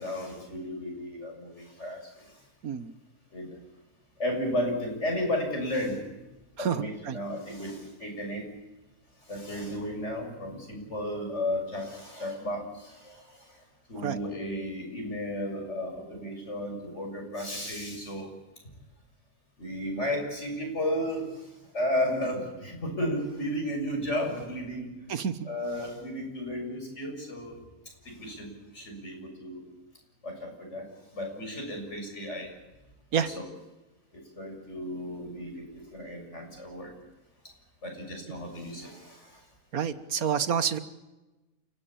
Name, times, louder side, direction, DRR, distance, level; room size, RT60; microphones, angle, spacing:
voice 1, 0.0-2.4 3.3-3.5 4.2-6.0 6.6-8.5 9.2-13.6 13.9-18.3 19.6-24.9 25.4-27.6 28.0-29.6 30.2-30.9 31.1-32.5 33.1-33.4 34.4-36.9 37.8-39.4 40.2-40.5, left 1 dB, 50° left, 3 dB, 7.1 m, -34 dB
voice 2, 2.6-2.9 6.6-7.2 14.0-14.2 25.1-25.5 33.1-33.3 39.7-40.8, right 7 dB, 75° right, 13 dB, 1.6 m, -28 dB
29.5 x 17.0 x 8.8 m, 1.1 s
omnidirectional pair, 1.5 m